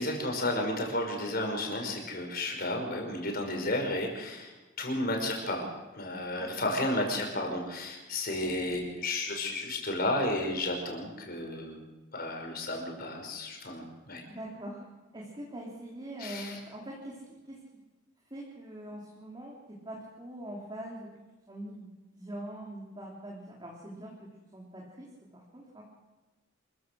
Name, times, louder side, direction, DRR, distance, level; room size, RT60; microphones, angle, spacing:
voice 1, 0.0-5.6 5.9-11.8 12.1-14.2 16.2-16.6, left 1 dB, 50° left, 2 dB, 5.3 m, -32 dB
voice 2, 14.3-14.9 15.1-17.6 18.3-21.1 21.5-25.8, right 1 dB, 20° right, -3 dB, 3.3 m, -43 dB
26.5 x 15.0 x 6.4 m, 1.1 s
head